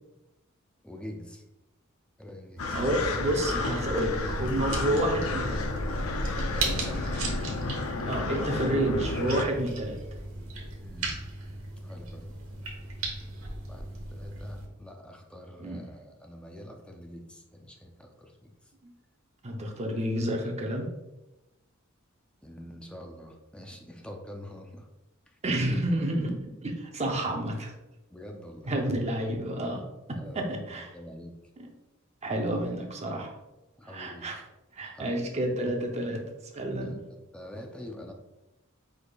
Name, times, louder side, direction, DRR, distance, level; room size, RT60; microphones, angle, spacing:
voice 1, 0.8-1.4 2.2-2.8 6.5-7.2 10.8-11.1 11.8-12.2 13.7-18.7 22.4-24.9 25.3-25.4 28.1-28.7 30.1-31.4 33.8-34.3 34.8-35.4 36.8-38.1, left 1 dB, 5° left, 2 dB, 0.5 m, -45 dB
sound 1, 2.6-9.4, left 3 dB, 85° left, 0.5 m, -32 dB
sound 2, 2.6-14.7, right 2 dB, 85° right, 1.0 m, -36 dB
voice 2, 2.7-5.7 8.0-10.0 15.6-15.8 18.8-18.9 19.4-20.9 25.4-27.7 28.6-30.9 31.6-31.7 32.2-33.3 33.8-34.4 34.8-37.0, right 1 dB, 30° right, 2 dB, 0.7 m, -30 dB
5.0 x 4.1 x 2.3 m, 0.97 s
head